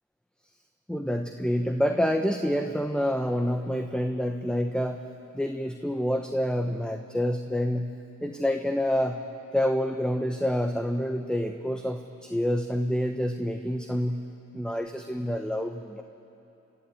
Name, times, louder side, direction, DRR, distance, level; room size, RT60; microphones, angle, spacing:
voice 1, 0.9-5.1 5.3-7.9 8.2-9.2 9.5-14.2 14.5-16.0, equal, 5° left, 6 dB, 1.1 m, -27 dB
25.5 x 13.5 x 9.4 m, 2.9 s
cardioid pair, 55°, 32 cm